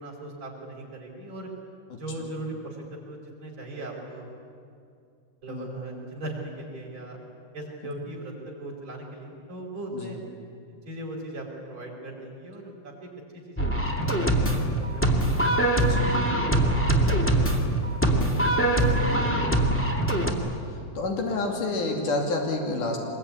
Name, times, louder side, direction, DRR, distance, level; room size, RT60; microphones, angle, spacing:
voice 1, 0.0-1.5 1.9-2.8 3.1-4.2 5.4-7.2 7.5-10.2 10.7-15.4 16.0-18.6 19.0-20.0, right 1 dB, 40° right, -1 dB, 6.0 m, -39 dB
voice 2, 1.9-2.3 5.5-5.8 9.9-10.1 15.8-16.1 19.0-19.4 21.0-23.0, left 2 dB, 90° left, 1 dB, 4.2 m, -29 dB
sound 1, 13.6-20.3, right 1 dB, 5° left, 1.8 m, -23 dB
24.5 x 21.5 x 9.9 m, 2.4 s
omnidirectional pair, 3.5 m